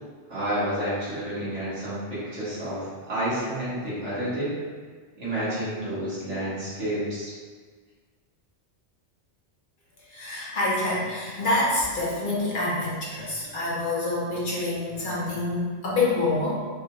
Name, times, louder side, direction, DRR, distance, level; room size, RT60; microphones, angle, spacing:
voice 1, 0.3-4.5 5.2-7.3, right 1 dB, 85° right, -11 dB, 1.9 m, -30 dB
voice 2, 10.1-16.6, left 2 dB, 50° left, -6 dB, 0.8 m, -26 dB
4.5 x 2.3 x 2.9 m, 1.5 s
omnidirectional pair, 1.2 m